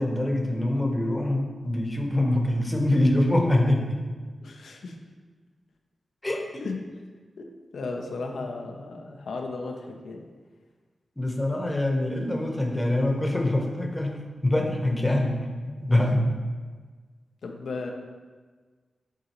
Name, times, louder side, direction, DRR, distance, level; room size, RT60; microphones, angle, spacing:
voice 1, 0.0-4.1 6.2-6.6 11.2-15.5 15.8-16.3, left 1 dB, 15° left, 1 dB, 1.0 m, -24 dB
voice 2, 4.4-4.9 6.6-6.8 7.4-10.2 17.4-17.9, left 3 dB, 80° left, 2 dB, 0.7 m, -35 dB
8.1 x 3.8 x 3.1 m, 1.5 s
cardioid pair, 60°, 0 cm